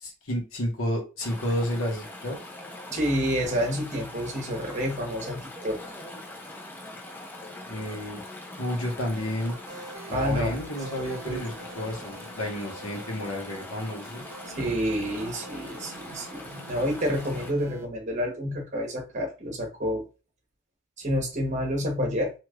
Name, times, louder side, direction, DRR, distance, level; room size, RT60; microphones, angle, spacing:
voice 1, 0.0-2.4 7.7-8.2 8.6-9.6 10.1-14.2, left 1 dB, 80° left, 0 dB, 1.2 m, -31 dB
Chatter / Stream, 1.2-17.5, left 1 dB, 10° left, 0.4 m, -42 dB
voice 2, 2.9-5.9 10.1-10.6 11.0-11.4 14.5-20.0 21.0-22.3, equal, 35° right, 1 dB, 0.9 m, -29 dB
sound 1, 9.1-17.9, right 2 dB, 85° right, 0.6 m, -46 dB
3.1 x 2.8 x 2.3 m, 0.30 s
head